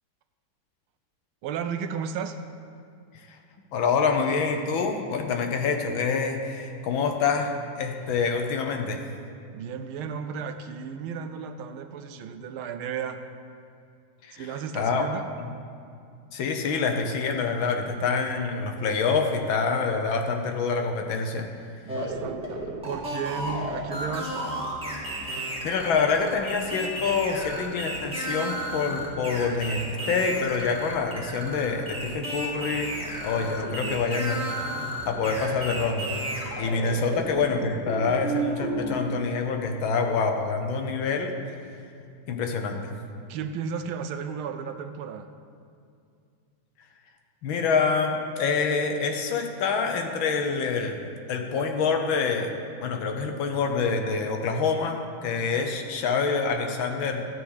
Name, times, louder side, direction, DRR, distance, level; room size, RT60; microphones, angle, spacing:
voice 1, 1.4-2.4 9.5-13.2 14.3-15.3 21.8-24.3 33.6-34.0 43.3-45.3 53.3-53.4, right 7 dB, 80° right, 9 dB, 1.5 m, -34 dB
voice 2, 3.7-9.0 14.2-14.5 14.7-15.1 15.4-15.5 16.3-21.5 25.1-32.9 33.2-34.4 35.0-36.2 36.6-41.3 42.3-42.9 47.4-51.0 51.3-52.5 52.8-57.3, left 5 dB, 70° left, 4 dB, 1.6 m, -26 dB
sound 1, 21.9-38.9, right 1 dB, 5° right, 1.7 m, -32 dB
13.5 x 4.7 x 8.1 m, 2.4 s
omnidirectional pair, 2.3 m